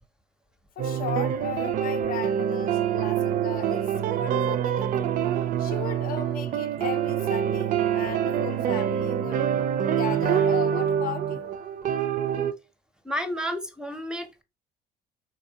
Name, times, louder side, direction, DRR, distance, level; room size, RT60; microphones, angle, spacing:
voice 1, 0.8-5.1 5.6-9.5 9.9-11.6, left 9 dB, 60° left, 0.5 m, -36 dB
sound 1, 0.8-12.5, right 9 dB, 55° right, 0.4 m, -26 dB
voice 2, 13.0-14.4, equal, 5° right, 0.6 m, -31 dB
4.0 x 2.6 x 2.7 m
cardioid pair, 110°, 17 cm